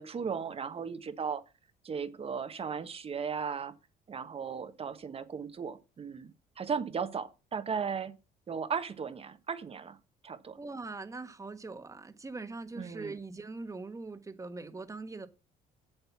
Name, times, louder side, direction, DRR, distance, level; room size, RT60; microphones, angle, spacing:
voice 1, 0.0-1.4 1.8-3.7 4.1-8.1 8.5-10.0 10.2-10.6 12.8-13.2, right 6 dB, 35° right, 1.2 m, -36 dB
voice 2, 10.6-15.3, right 3 dB, 20° right, 1.4 m, -42 dB
8.1 x 7.8 x 5.9 m
cardioid pair, 110°, 17 cm